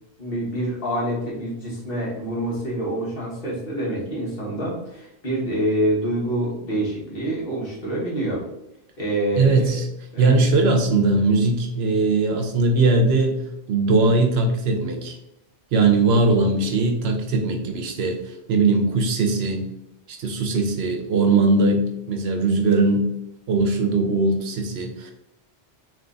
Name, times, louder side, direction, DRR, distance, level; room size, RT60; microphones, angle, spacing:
voice 1, 0.2-8.4 9.0-9.8 10.1-10.4, right 1 dB, 55° left, -4 dB, 1.5 m, -26 dB
voice 2, 9.4-9.8 10.2-13.4 13.7-15.2 15.7-18.2 18.5-19.7 20.1-23.1 23.5-25.1, right 3 dB, 70° right, 5 dB, 0.9 m, -20 dB
3.5 x 3.1 x 3.8 m, 0.85 s
omnidirectional pair, 1.2 m